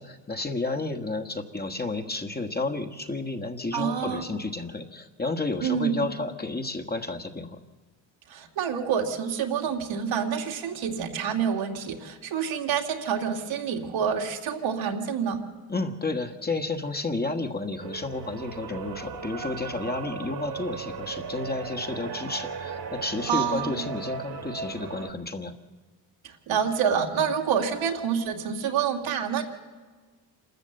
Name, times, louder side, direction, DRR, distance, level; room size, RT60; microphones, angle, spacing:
voice 1, 0.0-7.6 15.7-25.5, left 3 dB, 20° left, 5 dB, 1.5 m, -31 dB
voice 2, 3.7-4.3 5.6-6.1 8.3-15.5 23.3-23.8 26.2-29.4, right 7 dB, 75° right, 2 dB, 2.6 m, -27 dB
sound 1, 17.8-25.1, right 6 dB, 55° right, 2.4 m, -37 dB
27.0 x 13.5 x 7.8 m, 1.4 s
supercardioid pair, 70°, 48 cm